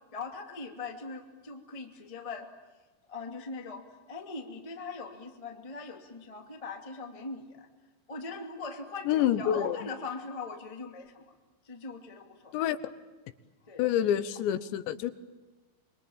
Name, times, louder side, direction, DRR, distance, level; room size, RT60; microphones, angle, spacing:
voice 1, 0.1-2.5 3.1-7.7 8.1-11.2 11.6-12.7 13.6-13.9, left 4 dB, 15° left, 4 dB, 1.2 m, -41 dB
voice 2, 9.1-9.8 12.5-12.8 13.8-15.1, left 11 dB, 80° left, 13 dB, 3.2 m, -27 dB
26.5 x 23.5 x 8.9 m, 1.2 s
omnidirectional pair, 5.3 m